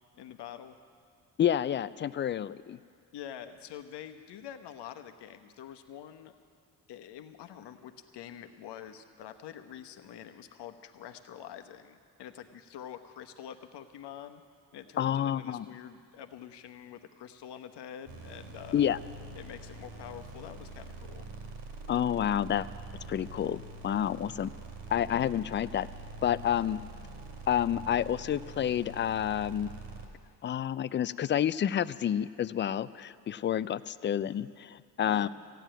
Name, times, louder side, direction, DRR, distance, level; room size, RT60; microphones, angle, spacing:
voice 1, 0.2-0.8 3.1-6.3 6.9-14.4 14.7-18.8 19.3-21.3 25.1-25.3 35.0-35.3, left 10 dB, 60° left, 8 dB, 1.2 m, -46 dB
voice 2, 1.4-2.8 15.0-15.6 18.7-19.0 21.9-22.7 23.1-24.5 24.9-25.9 26.2-26.8 27.5-29.7 30.4-35.3, left 10 dB, 25° left, 17 dB, 0.4 m, -29 dB
sound 1, 18.1-30.1, right 3 dB, 55° right, 2.8 m, -45 dB
15.0 x 9.2 x 9.0 m, 2.3 s
hypercardioid pair, 55°, 47 cm